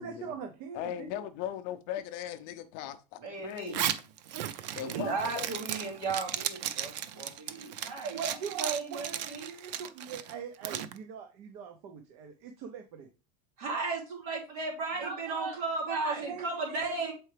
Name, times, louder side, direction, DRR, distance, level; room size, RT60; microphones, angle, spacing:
voice 1, 0.0-1.3 8.1-13.1 16.1-17.1, right 6 dB, 45° right, 0.7 m, -42 dB
voice 2, 0.7-4.0 4.8-5.5, left 11 dB, 40° left, 0.5 m, -39 dB
voice 3, 3.2-3.8 4.7-9.5 13.6-17.1, right 3 dB, 60° right, 2.8 m, -35 dB
Zipper (clothing), 3.6-10.9, right 10 dB, 85° right, 0.6 m, -36 dB
7.5 x 4.5 x 3.3 m
supercardioid pair, 175°, 21 cm